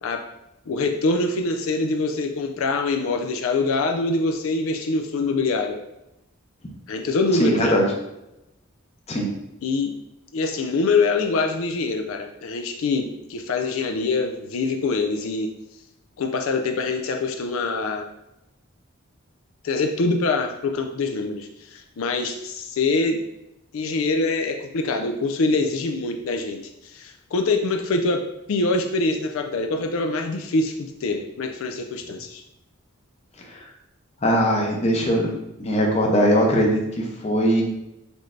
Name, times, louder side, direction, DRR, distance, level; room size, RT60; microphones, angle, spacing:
voice 1, 0.7-5.8 6.9-7.7 9.6-9.9 10.3-15.5 16.2-18.1 19.6-23.2 23.7-28.2 28.5-32.4, left 3 dB, 75° left, 4 dB, 0.4 m, -24 dB
voice 2, 7.4-7.8 9.1-9.3 33.5-33.6 34.2-35.3 35.6-37.6, equal, 30° left, 0 dB, 0.7 m, -20 dB
6.0 x 3.2 x 2.6 m, 0.89 s
head